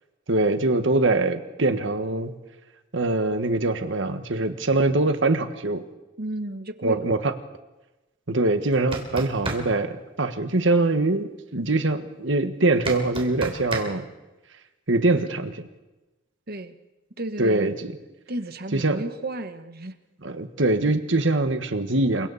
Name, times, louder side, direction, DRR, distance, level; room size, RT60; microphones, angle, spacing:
voice 1, 0.3-2.3 2.9-5.8 6.8-7.3 8.3-14.1 14.9-15.6 17.4-17.9 18.7-19.0 20.2-22.3, right 2 dB, 65° right, 8 dB, 1.6 m, -23 dB
voice 2, 6.2-7.1 16.5-16.7 17.2-17.8 18.3-20.0, right 1 dB, 50° right, 9 dB, 1.4 m, -33 dB
sound 1, 8.7-9.6 12.9-13.9, right 2 dB, 30° right, 3.4 m, -30 dB
29.0 x 24.0 x 4.2 m, 1.1 s
head